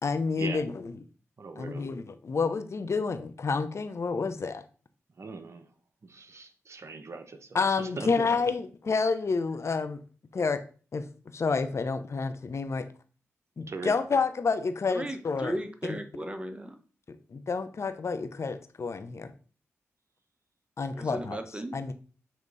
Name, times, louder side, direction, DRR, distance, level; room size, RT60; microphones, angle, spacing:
voice 1, 0.0-0.9 1.6-4.6 7.5-10.0 10.3-10.6 10.9-11.1 11.3-12.9 13.6-15.5 15.9-16.0 17.1-19.3 20.8-21.4 21.7-21.9, left 4 dB, 55° left, 10 dB, 0.8 m, -29 dB
voice 2, 1.4-1.9 5.2-5.7 6.0-8.3 13.7-13.9, right 3 dB, 55° right, 7 dB, 1.0 m, -40 dB
voice 3, 14.9-16.8 20.9-21.8, right 1 dB, 20° right, 7 dB, 1.2 m, -36 dB
7.5 x 3.0 x 4.1 m, 0.38 s
supercardioid pair, 45°, 6 cm